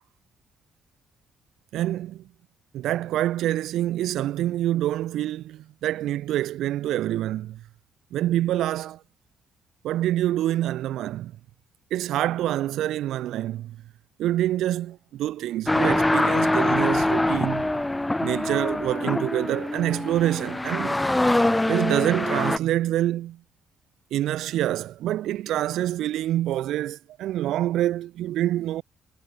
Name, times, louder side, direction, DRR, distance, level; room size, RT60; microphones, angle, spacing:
voice 1, 1.7-2.2 2.7-7.6 8.1-9.0 9.8-11.3 11.9-13.8 14.2-17.8 18.2-21.0 21.7-23.4 24.1-28.8, right 13 dB, 80° right, 2.1 m, -26 dB
sound 1, 15.7-22.6, left 1 dB, 10° left, 1.5 m, -24 dB
cardioid pair, 90°, 0 cm